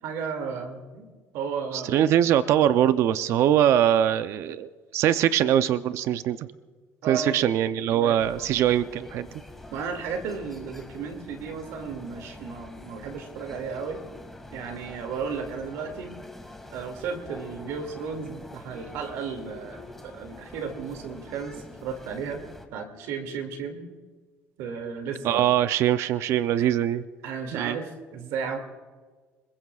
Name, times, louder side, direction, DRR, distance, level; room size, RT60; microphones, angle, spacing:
voice 1, 0.0-1.1 1.3-2.1 7.0-7.4 7.8-8.2 9.7-14.0 14.5-16.1 16.7-22.4 22.7-23.8 24.6-25.5 26.6-26.7 27.2-28.6, right 5 dB, 80° right, 5 dB, 2.5 m, -34 dB
voice 2, 1.7-6.5 7.1-9.3 25.2-27.0 27.5-27.8, right 11 dB, 65° right, 12 dB, 0.6 m, -22 dB
sound 1, 8.2-22.7, left 1 dB, 5° left, 2.0 m, -45 dB
26.0 x 22.0 x 2.4 m, 1.4 s
cardioid pair, 110°, 5 cm